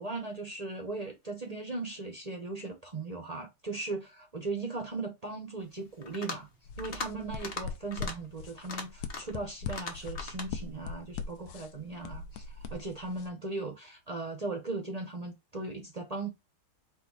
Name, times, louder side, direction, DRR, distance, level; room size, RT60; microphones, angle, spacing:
voice 1, 0.0-6.5 6.8-16.3, right 3 dB, 40° right, 0.5 m, -38 dB
sound 1, 6.0-6.5 6.8-7.1 7.4-7.6 7.9-8.1 8.6-9.4 9.7-10.5, left 4 dB, 40° left, 0.9 m, -39 dB
sound 2, 6.6-13.3, left 5 dB, 90° left, 1.5 m, -41 dB
5.3 x 2.4 x 4.0 m
omnidirectional pair, 2.2 m